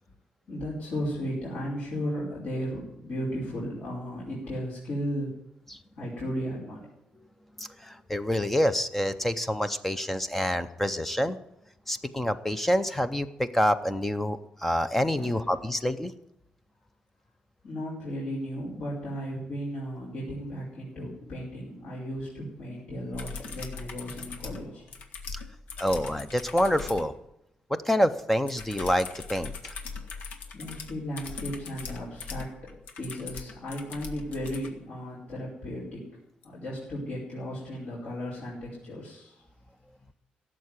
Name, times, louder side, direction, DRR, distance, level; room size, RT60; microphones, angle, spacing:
voice 1, 0.5-5.3 6.0-6.9 15.1-15.5 17.6-24.9 29.8-30.1 30.5-36.0 36.4-39.4, equal, 50° left, -7 dB, 5.0 m, -35 dB
voice 2, 7.6-11.4 11.9-16.1 25.3-25.4 25.8-27.1 27.7-29.7, equal, 5° left, 11 dB, 0.6 m, -27 dB
sound 1, 23.1-27.1 28.5-34.7 36.4-36.5, left 5 dB, 75° left, 1.7 m, -40 dB
17.0 x 7.5 x 9.7 m, 0.83 s
wide cardioid pair, 180°, 3 cm